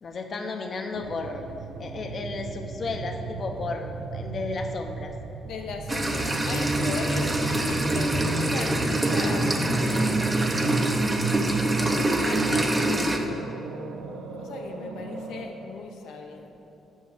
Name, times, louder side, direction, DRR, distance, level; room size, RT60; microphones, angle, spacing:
voice 1, 0.0-1.4 1.8-5.1, left 3 dB, 45° left, 4 dB, 0.7 m, -33 dB
sound 1, 0.9-15.5, right 4 dB, 90° right, 0.6 m, -36 dB
voice 2, 5.4-10.2 11.8-13.5 14.4-16.5, left 4 dB, 80° left, 3 dB, 0.8 m, -38 dB
sound 2, 5.9-13.2, right 1 dB, 20° right, 0.7 m, -25 dB
5.9 x 5.4 x 6.6 m, 2.9 s
cardioid pair, 90°, 0 cm